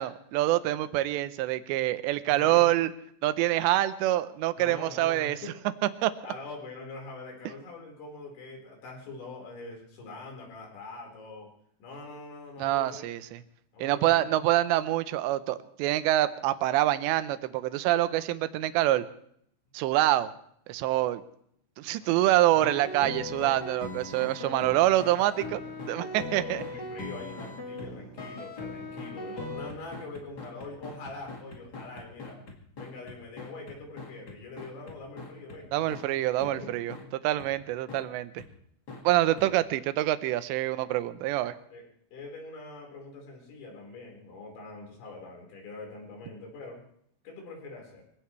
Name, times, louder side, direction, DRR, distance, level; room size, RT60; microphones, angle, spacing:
voice 1, 0.0-2.9 3.2-5.4 6.0-6.1 12.6-13.2 13.8-19.0 19.7-20.3 20.7-21.2 21.8-25.6 25.9-26.6 35.7-36.9 37.2-38.4 39.0-41.5, right 15 dB, 80° right, 12 dB, 2.8 m, -26 dB
voice 2, 2.3-2.6 4.6-5.6 6.2-11.5 11.8-13.1 13.7-14.2 22.0-22.5 24.4-25.4 26.1-32.4 32.7-35.9 36.3-36.8 39.2-39.5 41.7-41.8 42.1-46.8 47.2-48.0, left 3 dB, 65° left, 0 dB, 6.6 m, -44 dB
sound 1, 22.5-35.6 35.9-36.0 36.4-36.5 36.9-37.0 37.4-37.5 37.9-38.0 38.4-38.5 38.9-39.0 39.4-39.5, left 2 dB, 40° left, 1.4 m, -40 dB
24.5 x 17.0 x 3.2 m, 0.67 s
omnidirectional pair, 5.5 m